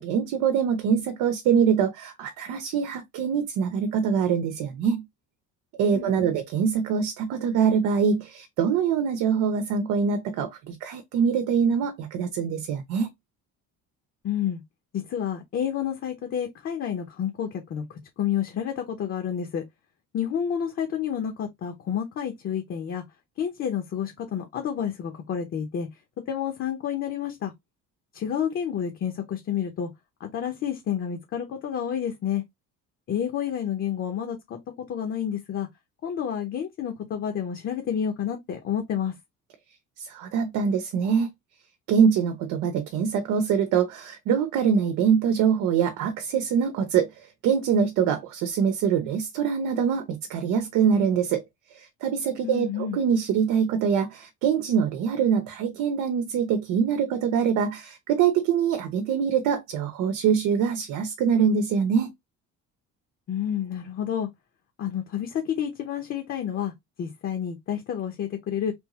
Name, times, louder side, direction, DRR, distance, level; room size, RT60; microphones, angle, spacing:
voice 1, 0.0-5.0 5.8-13.1 40.0-41.3 41.9-47.1 47.4-51.4 51.7-62.1, right 7 dB, 90° right, 0.8 m, -24 dB
voice 2, 5.9-6.4 14.2-14.6 14.9-19.6 20.1-23.0 23.4-25.9 26.3-27.5 28.1-29.9 30.2-32.4 33.1-35.7 36.0-39.1 52.4-53.0 63.3-64.3 64.8-66.7 67.0-68.7, left 9 dB, 45° left, 0.8 m, -29 dB
3.5 x 2.6 x 2.9 m
cardioid pair, 165°, 31 cm